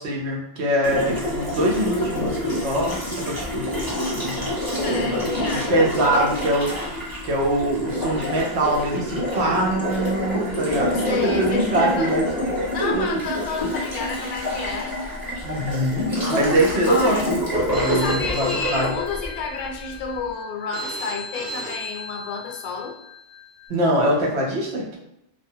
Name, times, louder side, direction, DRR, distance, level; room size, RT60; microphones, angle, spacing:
voice 1, 0.0-5.2 5.5-6.9 7.2-12.2 12.6-13.2 15.4-17.4 17.7-18.9 23.7-25.0, right 1 dB, 80° right, -2 dB, 1.0 m, -23 dB
Water tap faucet, 0.8-20.0, left 1 dB, 20° right, 0.9 m, -27 dB
voice 2, 4.8-5.8 10.9-12.1 12.7-14.9 16.9-17.3 17.9-23.0, left 5 dB, 70° left, 1 dB, 0.7 m, -30 dB
Telephone, 17.7-23.7, left 1 dB, 55° right, 0.6 m, -36 dB
2.4 x 2.2 x 2.6 m, 0.84 s
omnidirectional pair, 1.1 m